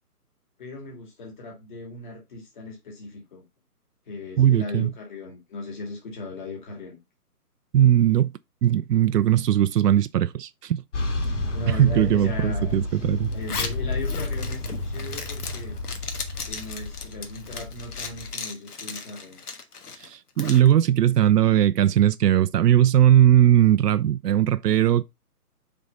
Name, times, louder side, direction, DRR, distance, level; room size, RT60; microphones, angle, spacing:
voice 1, 0.6-3.4 4.1-7.0 11.5-12.8 13.3-15.8 16.5-19.4, left 2 dB, 30° left, 2.4 m, -37 dB
voice 2, 4.4-4.9 7.7-8.3 8.6-10.8 11.7-13.3 20.0-25.0, right 11 dB, 85° right, 0.5 m, -19 dB
sound 1, 10.9-18.3, left 1 dB, 50° left, 2.3 m, -31 dB
Zipper (clothing), 13.3-20.7, left 5 dB, 70° left, 1.4 m, -36 dB
5.2 x 3.5 x 5.2 m
hypercardioid pair, 170°, 47 cm